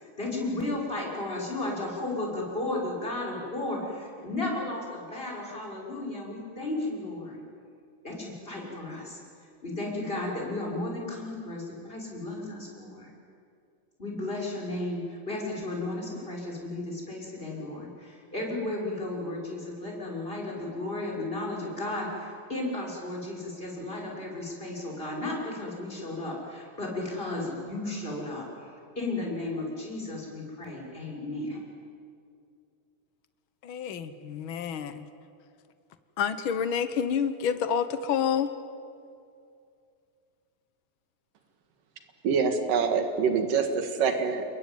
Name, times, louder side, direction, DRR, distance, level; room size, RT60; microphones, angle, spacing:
voice 1, 0.2-7.4 8.0-9.2 9.6-13.1 14.0-28.5 29.0-31.6, left 2 dB, 15° left, -2 dB, 6.1 m, -34 dB
voice 2, 33.6-35.1 36.2-38.5, left 7 dB, 65° left, 11 dB, 1.2 m, -28 dB
voice 3, 42.2-44.5, right 5 dB, 75° right, 6 dB, 3.4 m, -25 dB
29.0 x 22.0 x 9.3 m, 2.4 s
omnidirectional pair, 3.9 m